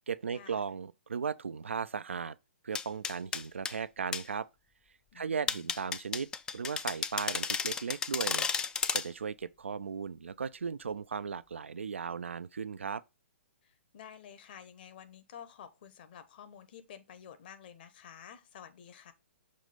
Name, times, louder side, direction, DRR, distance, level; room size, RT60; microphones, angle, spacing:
voice 1, 0.1-2.4 2.6-4.5 5.1-8.5 8.9-13.0, right 6 dB, 75° right, 0.4 m, -37 dB
sound 1, 2.7-3.7 4.1-4.2 5.5-9.1, left 6 dB, 10° left, 0.3 m, -33 dB
voice 2, 5.1-5.6 13.6-19.1, left 8 dB, 50° left, 1.1 m, -51 dB
6.5 x 3.2 x 5.1 m
figure-of-eight pair, 125°, 7 cm